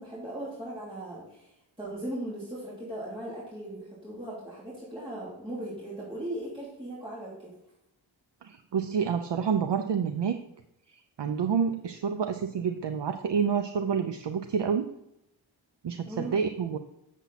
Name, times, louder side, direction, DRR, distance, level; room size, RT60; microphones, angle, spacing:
voice 1, 0.0-7.5 16.1-16.3, right 1 dB, 10° right, -8 dB, 2.9 m, -38 dB
voice 2, 8.4-10.4 10.9-14.9 15.8-16.8, right 6 dB, 65° right, 7 dB, 0.7 m, -28 dB
8.3 x 7.2 x 4.1 m, 0.83 s
wide cardioid pair, 115°, 47 cm